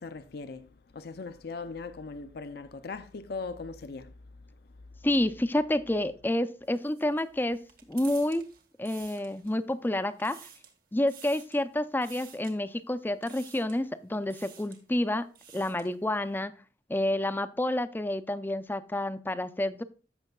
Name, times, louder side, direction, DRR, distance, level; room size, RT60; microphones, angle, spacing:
voice 1, 0.0-4.1, left 4 dB, 60° left, 0.5 m, -39 dB
voice 2, 5.0-8.5 8.8-10.4 10.9-15.2 15.5-16.5 16.9-19.8, left 1 dB, 10° left, 0.5 m, -29 dB
sound 1, 6.6-9.7 10.0-10.8 11.1-11.6 12.0-12.5 13.2-13.8 14.2-14.8 15.2-16.0, right 8 dB, 55° right, 1.6 m, -51 dB
14.5 x 6.2 x 2.3 m
head